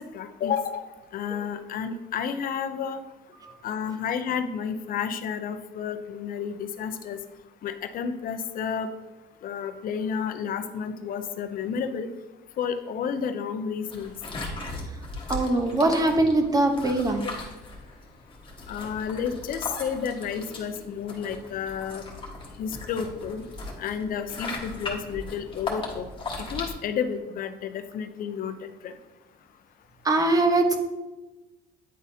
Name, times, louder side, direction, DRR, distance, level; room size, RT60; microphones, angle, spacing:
voice 1, 0.1-0.9 1.1-3.0 3.6-7.2 7.6-8.9 9.4-12.1 12.6-14.1 18.7-22.1 22.6-23.4 23.8-26.1 26.5-28.9, left 7 dB, 55° left, 10 dB, 0.6 m, -31 dB
sound 1, 13.9-26.7, left 2 dB, 30° left, 1.4 m, -38 dB
voice 2, 15.3-17.3 30.0-30.8, right 2 dB, 20° right, 5 dB, 0.9 m, -22 dB
9.3 x 4.0 x 2.7 m, 1.1 s
cardioid pair, 110°, 17 cm